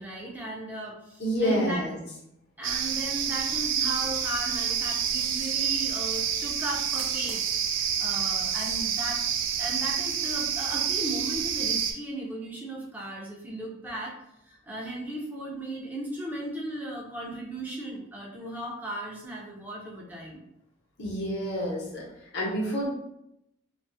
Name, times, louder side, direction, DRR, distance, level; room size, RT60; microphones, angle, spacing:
voice 1, 0.0-1.8 2.6-9.2 9.6-14.2 14.4-20.4, right 1 dB, 10° right, -3 dB, 0.4 m, -36 dB
voice 2, 1.2-2.0 21.0-22.0 22.3-22.9, equal, 60° left, -4 dB, 0.8 m, -28 dB
sound 1, 2.6-11.9, right 8 dB, 75° right, 0.3 m, -28 dB
2.5 x 2.3 x 2.6 m, 0.80 s
head